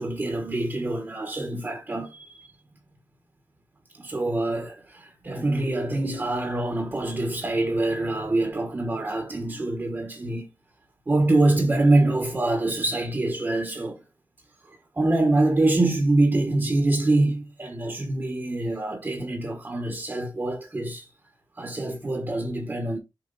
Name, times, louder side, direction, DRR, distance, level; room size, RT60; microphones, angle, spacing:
voice 1, 0.0-2.5 3.9-10.5 11.1-14.0 14.6-21.1 21.6-23.0, right 2 dB, 25° right, 1.3 m, -25 dB
7.0 x 4.8 x 4.1 m
wide cardioid pair, 150°, 8 cm